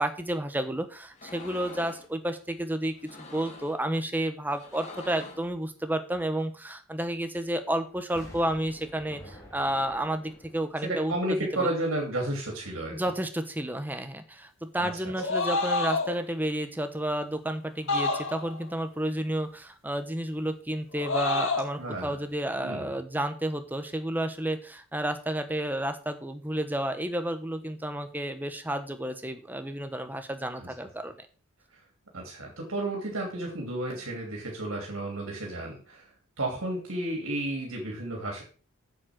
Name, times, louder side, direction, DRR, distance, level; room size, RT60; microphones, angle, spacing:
voice 1, 0.0-11.7 12.9-31.1, right 1 dB, 10° right, 8 dB, 1.3 m, -31 dB
sound 1, 1.1-2.1 2.9-3.8 4.5-5.5, left 3 dB, 30° left, 2.3 m, -45 dB
Explosion, 8.2-12.1 12.5-12.6, equal, 15° left, 3.1 m, -50 dB
voice 2, 10.8-13.0 14.8-14.9 21.8-22.2 22.6-22.9 30.6-30.7 32.1-36.1 36.4-38.4, right 1 dB, 65° right, 0 dB, 3.0 m, -32 dB
sound 2, 15.1-16.2 17.9-18.6 20.9-21.7, left 3 dB, 60° left, 1.8 m, -28 dB
8.8 x 7.9 x 6.2 m, 0.37 s
head